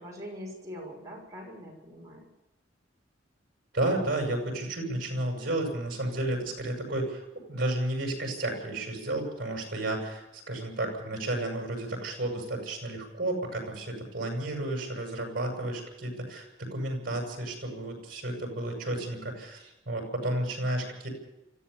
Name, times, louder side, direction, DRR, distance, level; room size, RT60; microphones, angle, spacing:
voice 1, 0.0-2.2, equal, 20° right, -2 dB, 6.2 m, -42 dB
voice 2, 3.7-21.1, right 1 dB, 50° right, 2 dB, 7.8 m, -32 dB
25.0 x 15.0 x 7.1 m, 0.91 s
head